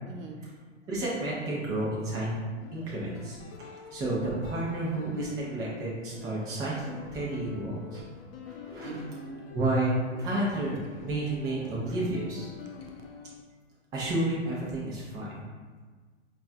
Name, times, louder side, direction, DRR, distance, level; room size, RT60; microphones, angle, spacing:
voice 1, 0.0-0.5 2.8-3.0 7.7-7.8 8.4-9.6 11.9-12.0 13.2-13.3, right 3 dB, 85° right, 2 dB, 0.7 m, -44 dB
voice 2, 0.9-2.4 2.7-8.0 8.7-8.9 9.5-12.5 13.9-15.3, right 1 dB, 10° right, -6 dB, 0.4 m, -31 dB
sound 1, 2.6-13.4, left 5 dB, 50° left, 0.5 m, -46 dB
4.5 x 2.3 x 2.6 m, 1.4 s
hypercardioid pair, 130°, 38 cm